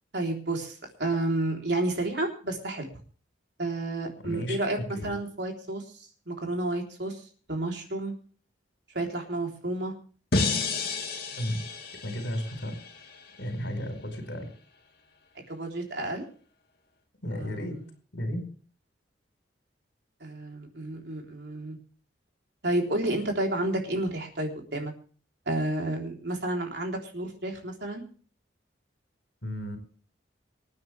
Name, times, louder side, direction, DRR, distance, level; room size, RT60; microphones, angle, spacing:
voice 1, 0.1-2.9 3.6-7.2 7.5-8.1 8.9-9.9 15.5-16.2 17.4-17.6 20.2-21.8 22.6-24.9 25.5-28.0, right 2 dB, 60° right, 1 dB, 3.7 m, -31 dB
voice 2, 4.2-5.1 11.3-11.6 12.0-12.7 13.4-14.5 17.2-17.8 18.1-18.4 29.4-29.8, equal, 70° left, 6 dB, 4.8 m, -33 dB
sound 1, 10.3-13.4, left 3 dB, 55° left, 2.7 m, -31 dB
26.0 x 9.5 x 3.4 m, 0.43 s
head